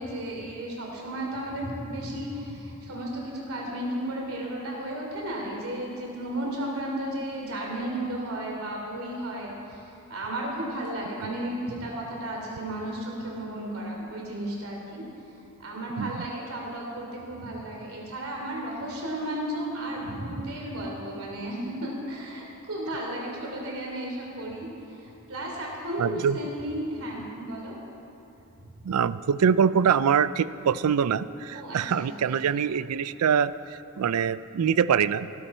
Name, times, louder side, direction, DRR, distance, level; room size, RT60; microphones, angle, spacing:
voice 1, 0.0-15.0 15.6-27.8 31.5-32.1, right 1 dB, 70° right, -1 dB, 3.1 m, -34 dB
voice 2, 26.0-26.4 28.8-35.3, right 7 dB, 90° right, 16 dB, 0.4 m, -24 dB
17.5 x 12.0 x 4.4 m, 2.9 s
head